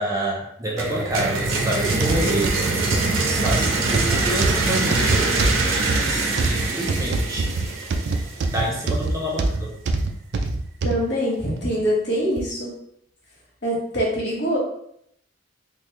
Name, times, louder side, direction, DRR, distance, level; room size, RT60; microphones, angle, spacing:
voice 1, 0.0-2.5 3.3-5.3 6.0-7.6 8.5-9.7, right 1 dB, 15° right, -4 dB, 0.7 m, -27 dB
sound 1, 0.8-8.5, right 3 dB, 85° right, 0.7 m, -24 dB
sound 2, 1.9-11.0 11.6-11.7 12.4-12.5, right 3 dB, 55° right, 0.4 m, -24 dB
voice 2, 10.8-12.7 13.6-14.6, equal, 60° left, -4 dB, 1.3 m, -24 dB
3.7 x 2.5 x 3.1 m, 0.71 s
head